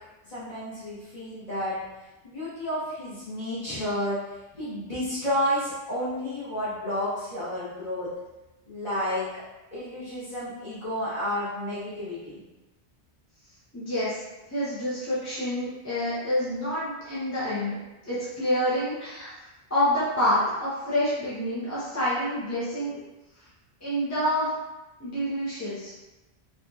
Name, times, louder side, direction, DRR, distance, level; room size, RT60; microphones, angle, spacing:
voice 1, 0.2-1.8 2.2-8.2 8.7-9.4 9.7-12.4, left 1 dB, 40° left, -14 dB, 1.1 m, -31 dB
voice 2, 13.7-14.2 14.5-17.7 18.0-23.0 23.4-23.5 23.8-24.5 25.0-25.9, left 1 dB, 20° left, -10 dB, 0.5 m, -28 dB
2.8 x 2.7 x 2.2 m, 1.1 s
omnidirectional pair, 1.1 m